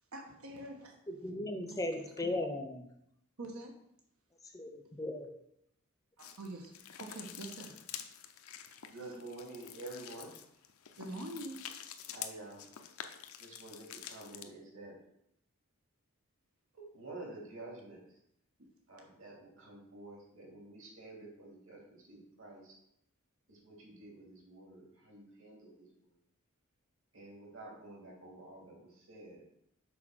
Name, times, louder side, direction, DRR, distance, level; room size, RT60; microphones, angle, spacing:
voice 1, 0.1-0.9 1.7-1.8 3.4-3.7 6.2-6.7 7.0-8.0 11.0-11.7, right 1 dB, 90° right, 1 dB, 1.2 m, -45 dB
voice 2, 1.1-2.9 4.5-5.4, left 1 dB, 15° left, 6 dB, 0.6 m, -37 dB
Pas dans la boue, 6.2-14.5, left 9 dB, 85° left, 0.6 m, -48 dB
voice 3, 8.9-10.3 12.1-12.7 13.4-15.0 16.7-18.2 18.9-22.8 23.5-26.2 27.1-29.4, right 2 dB, 65° right, -1 dB, 2.5 m, -50 dB
6.1 x 4.3 x 6.2 m, 0.75 s
head